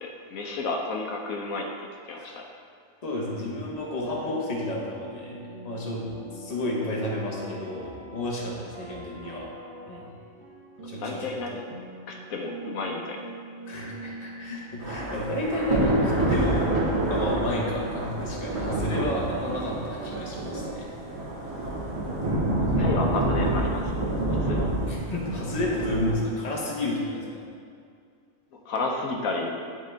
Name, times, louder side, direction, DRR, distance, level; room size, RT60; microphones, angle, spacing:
voice 1, 0.0-1.7 2.1-2.5 11.0-11.6 12.1-13.2 22.8-23.9 24.4-24.7 28.7-29.5, left 3 dB, 80° left, 1 dB, 1.1 m, -31 dB
voice 2, 3.0-9.5 9.9-10.1 10.8-11.2 13.7-16.7 17.1-20.9 22.6-22.8 24.8-27.4, left 1 dB, 30° left, -3 dB, 1.1 m, -31 dB
sound 1, 4.0-22.4, right 2 dB, 60° right, 1.0 m, -44 dB
Thunder / Rain, 14.8-26.1, right 1 dB, 25° right, 1.4 m, -27 dB
10.5 x 3.8 x 3.4 m, 2.2 s
omnidirectional pair, 1.5 m